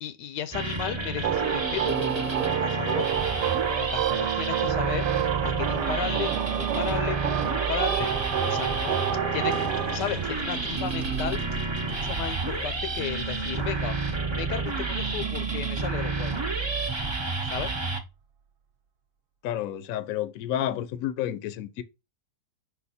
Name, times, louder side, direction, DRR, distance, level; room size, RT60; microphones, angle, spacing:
voice 1, 0.0-3.1 3.7-5.1 5.4-8.1 8.4-9.0 9.3-9.5 9.9-11.4 11.8-14.0 14.3-16.4 17.4-17.7, left 9 dB, 85° left, 1.4 m, -34 dB
sound 1, 0.5-18.0, right 3 dB, 35° right, 0.4 m, -30 dB
sound 2, 1.2-10.0, right 10 dB, 80° right, 1.1 m, -28 dB
sound 3, 9.4-17.5, right 7 dB, 65° right, 0.8 m, -39 dB
voice 2, 19.4-21.8, left 11 dB, 65° left, 1.0 m, -30 dB
5.3 x 4.2 x 4.2 m
omnidirectional pair, 1.8 m